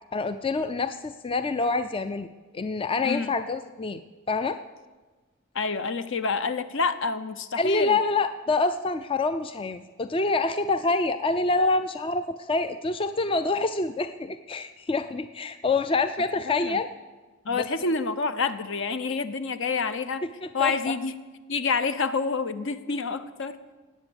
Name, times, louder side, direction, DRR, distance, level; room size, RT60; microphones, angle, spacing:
voice 1, 0.1-2.3 2.5-4.0 4.3-4.6 7.6-16.9 17.5-17.7 20.4-20.9, left 3 dB, 25° left, 10 dB, 0.4 m, -26 dB
voice 2, 5.5-8.0 16.5-16.8 17.4-20.2 20.5-21.2 21.5-23.7, left 4 dB, 65° left, 11 dB, 0.8 m, -28 dB
18.5 x 8.3 x 7.1 m, 1.3 s
head